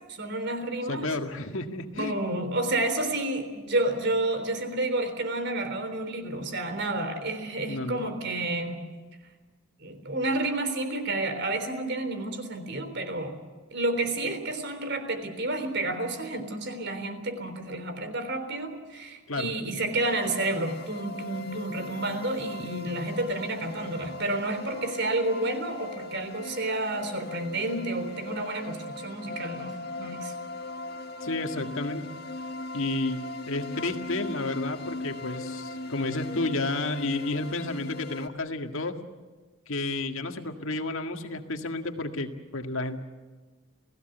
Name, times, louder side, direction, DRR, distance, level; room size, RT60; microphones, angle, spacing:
voice 1, 0.1-1.1 1.9-8.8 9.8-13.3 13.7-30.3, right 2 dB, 50° right, 9 dB, 3.6 m, -30 dB
voice 2, 0.9-2.2 7.7-8.0 19.3-19.5 31.2-32.1 32.7-33.2 33.5-39.0 39.7-43.0, left 2 dB, 65° left, 6 dB, 1.9 m, -31 dB
sound 1, 20.0-38.3, left 2 dB, 45° left, 1.4 m, -39 dB
29.0 x 17.5 x 8.0 m, 1.4 s
head